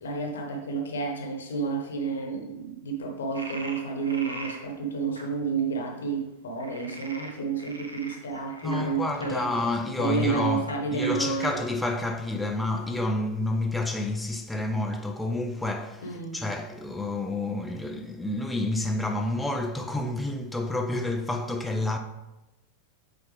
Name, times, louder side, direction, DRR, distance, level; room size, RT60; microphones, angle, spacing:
voice 1, 0.0-11.6 16.0-16.4, right 4 dB, 65° left, 1.2 m, -30 dB
Frog, 3.3-4.6 5.2-5.3 6.6-9.3 10.2-10.4 10.7-10.8 11.0-11.1 11.4-11.5 12.1-12.9, right 2 dB, 75° right, 0.9 m, -41 dB
voice 2, 8.6-10.7 10.9-22.0, left 2 dB, 5° left, 0.5 m, -29 dB
8.0 x 4.0 x 3.4 m
figure-of-eight pair, 90°, 0 cm